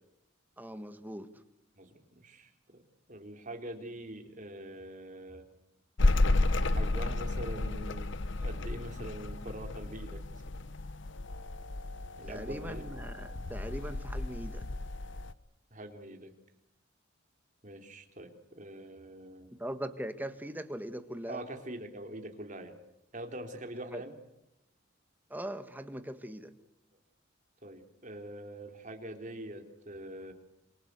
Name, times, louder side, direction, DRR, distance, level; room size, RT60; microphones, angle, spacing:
voice 1, 0.6-1.3 12.2-14.6 19.6-21.4 23.9-24.0 25.3-26.5, right 1 dB, 10° right, 9 dB, 1.6 m, -40 dB
voice 2, 1.8-2.8 3.1-5.5 6.7-10.4 12.2-12.8 15.7-16.3 17.6-19.5 21.3-22.8 23.1-24.1 27.6-30.3, right 1 dB, 40° right, 4 dB, 3.5 m, -44 dB
sound 1, 6.0-15.3, left 2 dB, 65° left, 0.9 m, -32 dB
26.5 x 24.0 x 8.2 m, 0.86 s
head